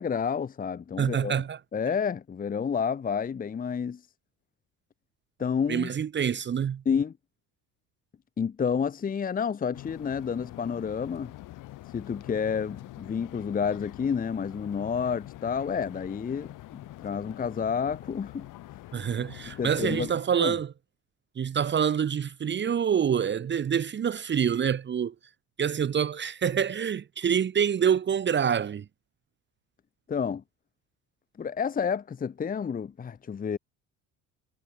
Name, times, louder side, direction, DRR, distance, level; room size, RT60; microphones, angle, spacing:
voice 1, 0.0-1.4 1.7-4.0 5.4-5.9 6.9-7.1 8.4-11.3 11.9-18.5 19.6-20.1 20.4-20.5 30.1-30.4 31.4-33.6, left 6 dB, 25° left, 0.9 m, -30 dB
voice 2, 1.0-1.6 5.7-6.8 18.9-20.7 21.4-25.1 25.6-28.8, right 8 dB, 35° right, 1.1 m, -26 dB
sound 1, 9.7-20.1, left 16 dB, 65° left, 3.7 m, -45 dB
supercardioid pair, 100°, 34 cm